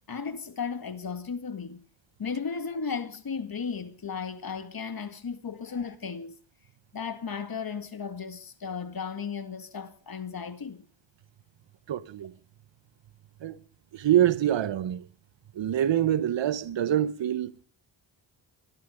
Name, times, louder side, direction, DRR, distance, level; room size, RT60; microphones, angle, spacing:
voice 1, 0.1-1.8 2.2-6.3 6.9-10.8, left 6 dB, 50° left, 2.2 m, -35 dB
voice 2, 11.9-12.3 13.4-13.6 13.9-15.0 15.5-17.6, right 11 dB, 75° right, 1.1 m, -25 dB
23.0 x 12.0 x 5.2 m
cardioid pair, 75°, 45 cm